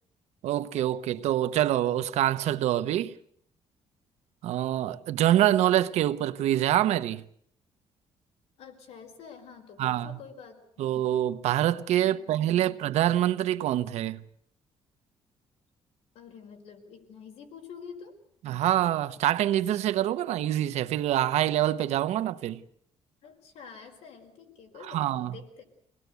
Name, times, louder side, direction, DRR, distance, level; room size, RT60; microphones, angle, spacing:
voice 1, 0.4-3.1 4.4-7.2 9.8-10.2 10.8-14.2 18.4-22.6 24.8-25.3, right 12 dB, 85° right, 1.0 m, -25 dB
voice 2, 8.6-10.9 12.0-12.3 12.5-12.8 16.2-18.2 23.2-25.6, left 6 dB, 75° left, 5.2 m, -48 dB
25.5 x 19.0 x 8.2 m
cardioid pair, 155°, 11 cm